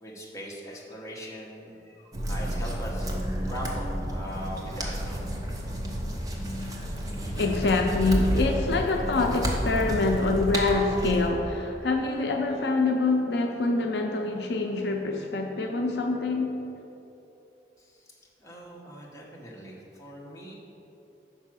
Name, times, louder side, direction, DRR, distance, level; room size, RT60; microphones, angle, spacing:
voice 1, 0.0-3.1 3.4-5.3 17.8-20.5, equal, 20° left, -4 dB, 1.0 m, -41 dB
cut pig ear, 2.1-11.3, equal, 20° right, 0.7 m, -31 dB
voice 2, 7.3-16.6, left 3 dB, 70° left, 2 dB, 0.5 m, -25 dB
5.5 x 4.7 x 6.0 m, 3.0 s
head